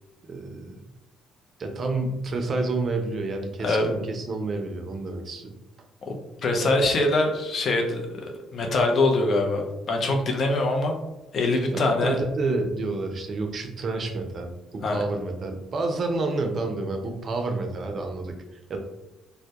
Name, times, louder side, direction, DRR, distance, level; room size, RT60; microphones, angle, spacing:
voice 1, 0.3-0.8 1.6-5.5 11.7-14.5 14.9-18.3 18.7-18.8, right 3 dB, 50° right, 4 dB, 0.4 m, -29 dB
voice 2, 6.4-8.0 8.5-11.0 11.3-12.2 14.8-15.0, left 2 dB, 55° left, 2 dB, 0.5 m, -23 dB
2.1 x 2.1 x 2.7 m, 0.97 s
supercardioid pair, 70°, 0 cm